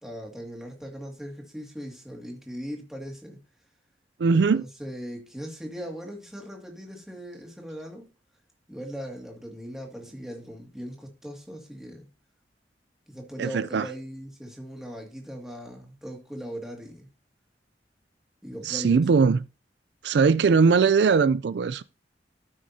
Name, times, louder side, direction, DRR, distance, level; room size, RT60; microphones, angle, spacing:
voice 1, 0.0-3.4 4.3-8.0 8.7-12.1 13.1-17.1 18.4-19.0, equal, 5° right, 2.2 m, -39 dB
voice 2, 4.2-4.6 13.4-13.9 18.6-19.4 20.0-21.8, right 5 dB, 70° right, 0.4 m, -20 dB
13.5 x 6.3 x 2.8 m
head